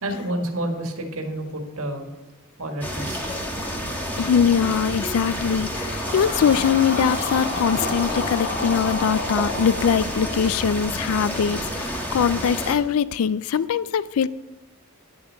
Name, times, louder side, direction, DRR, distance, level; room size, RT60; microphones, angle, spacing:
voice 1, 0.0-2.1 2.6-3.2, right 1 dB, 70° right, 4 dB, 1.7 m, -29 dB
sound 1, 2.8-12.8, equal, 10° left, 1.5 m, -29 dB
voice 2, 4.2-14.3, left 7 dB, 70° left, 17 dB, 0.3 m, -22 dB
sound 2, 5.5-10.7, left 3 dB, 50° left, 1.3 m, -32 dB
sound 3, 6.1-8.9 9.6-9.8 10.1-11.3, right 2 dB, 10° right, 1.1 m, -42 dB
10.5 x 7.0 x 6.3 m, 1.1 s
head